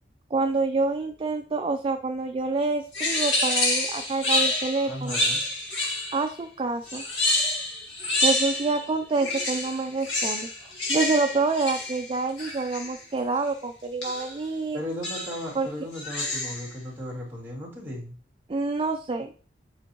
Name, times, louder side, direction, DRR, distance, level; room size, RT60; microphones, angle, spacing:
voice 1, 0.3-5.2 6.1-7.0 8.2-14.8 15.6-15.7 18.5-19.3, right 3 dB, 30° right, 5 dB, 0.3 m, -27 dB
sound 1, 2.9-6.3 6.9-8.9 9.1-13.0 14.0-14.4 15.0-15.5 15.9-16.7, left 2 dB, 75° left, 1.8 m, -28 dB
voice 2, 4.9-5.4 14.7-18.1, left 1 dB, 10° right, -3 dB, 2.2 m, -36 dB
7.9 x 4.4 x 2.9 m, 0.40 s
head